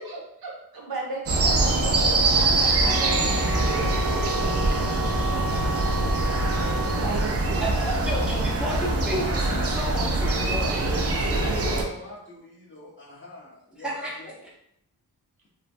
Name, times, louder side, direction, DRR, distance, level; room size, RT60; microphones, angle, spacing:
voice 1, 0.0-3.2 5.3-5.4 6.4-7.7 11.6-11.8, right 2 dB, 65° right, -2 dB, 0.8 m, -36 dB
sound 1, 1.3-11.8, right 2 dB, 40° right, 0.4 m, -23 dB
sound 2, 2.9-7.1, right 2 dB, 60° left, 0.8 m, -33 dB
voice 2, 3.0-4.2 11.3-14.3, left 2 dB, 30° left, -6 dB, 0.8 m, -41 dB
voice 3, 7.6-11.5 13.8-14.2, equal, 5° right, -5 dB, 0.7 m, -32 dB
3.0 x 2.1 x 2.5 m, 0.70 s
wide cardioid pair, 130°, 40 cm